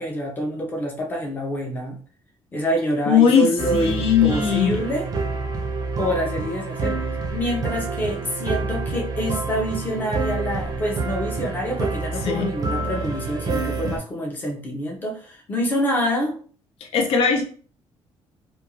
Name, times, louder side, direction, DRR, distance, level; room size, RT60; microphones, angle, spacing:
voice 1, 0.0-2.0 2.5-5.1 6.0-7.0 7.3-16.3, equal, 20° left, -1 dB, 0.6 m, -26 dB
voice 2, 3.1-4.8 12.2-12.5 13.8-13.9 16.8-17.4, left 7 dB, 70° left, 2 dB, 0.5 m, -19 dB
sound 1, 3.6-14.0, right 3 dB, 35° right, 0.5 m, -27 dB
2.5 x 2.3 x 2.9 m, 0.43 s
cardioid pair, 170°, 10 cm